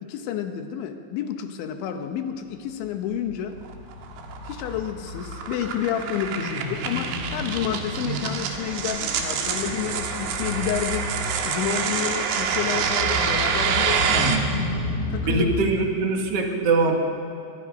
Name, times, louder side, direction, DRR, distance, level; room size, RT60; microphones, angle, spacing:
voice 1, 0.0-3.6 4.4-11.1 11.4-14.4 15.1-15.7, left 9 dB, 75° left, 6 dB, 3.2 m, -30 dB
sound 1, 2.5-15.6, left 1 dB, 15° left, 6.0 m, -33 dB
sound 2, 3.7-14.4, right 6 dB, 90° right, 4.3 m, -27 dB
voice 2, 14.1-14.6 15.2-17.0, right 3 dB, 55° right, 2 dB, 1.7 m, -23 dB
23.0 x 22.0 x 5.3 m, 2.8 s
omnidirectional pair, 5.8 m